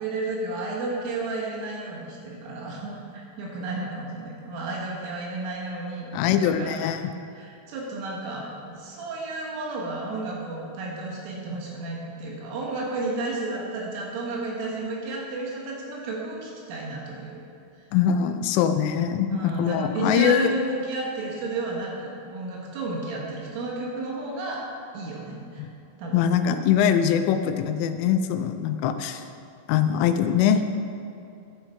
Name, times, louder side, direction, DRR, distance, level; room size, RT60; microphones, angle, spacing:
voice 1, 0.0-6.8 7.3-17.4 19.3-24.6 24.9-25.7 26.0-26.2, right 2 dB, 80° right, -3 dB, 4.0 m, -32 dB
voice 2, 6.1-7.1 17.9-20.5 25.6-25.7 26.1-29.2 29.7-30.6, left 9 dB, 85° left, 9 dB, 3.2 m, -22 dB
12.0 x 9.1 x 4.5 m, 2.6 s
omnidirectional pair, 5.7 m